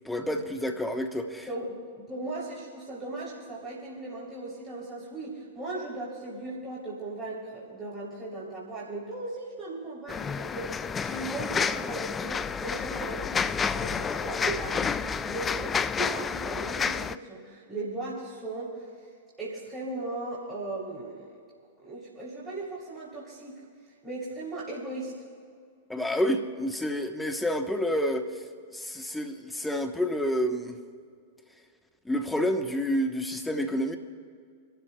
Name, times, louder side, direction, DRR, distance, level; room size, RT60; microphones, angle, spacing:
voice 1, 0.0-1.5 25.9-28.4 28.7-30.8 32.0-34.0, equal, 5° left, 4 dB, 1.2 m, -29 dB
voice 2, 1.5-18.9 19.4-21.4 21.8-23.6 24.0-25.1, right 2 dB, 15° right, -8 dB, 3.5 m, -37 dB
sound 1, 10.1-17.1, left 6 dB, 20° left, 0.3 m, -30 dB
30.0 x 12.5 x 2.4 m, 2.2 s
hypercardioid pair, 100°, 0 cm